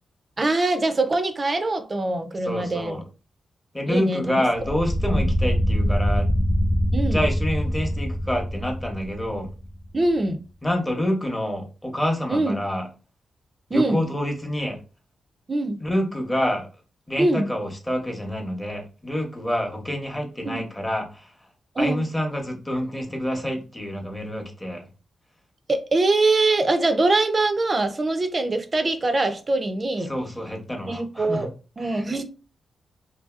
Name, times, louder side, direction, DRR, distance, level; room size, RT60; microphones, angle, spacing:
voice 1, 0.4-3.0 3.9-4.4 5.1-5.3 6.9-7.3 9.9-10.4 12.3-12.6 13.7-14.0 15.5-15.8 17.2-17.5 20.4-20.7 21.8-22.0 25.7-30.1 30.9-31.5 31.8-32.2, right 2 dB, 35° right, 0.4 m, -23 dB
voice 2, 2.4-3.0 3.7-6.4 7.1-9.5 10.6-12.8 13.7-14.8 15.8-16.7 17.1-21.3 21.8-24.8 30.1-31.5 31.8-32.2, equal, 15° left, 0.8 m, -27 dB
sound 1, 4.6-9.8, equal, 50° left, 0.5 m, -24 dB
2.7 x 2.6 x 2.4 m
cardioid pair, 85°, 0 cm